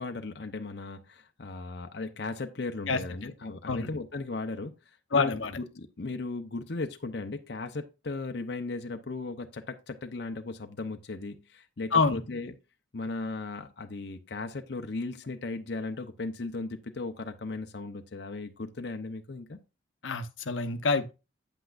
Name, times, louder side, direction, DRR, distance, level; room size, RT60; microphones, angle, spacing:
voice 1, 0.0-12.5 12.9-19.6, left 3 dB, 60° left, 0.7 m, -37 dB
voice 2, 2.9-3.3 3.7-3.9 5.1-5.6 11.9-12.2 20.0-21.1, left 4 dB, 90° left, 0.9 m, -27 dB
9.0 x 8.1 x 2.5 m
head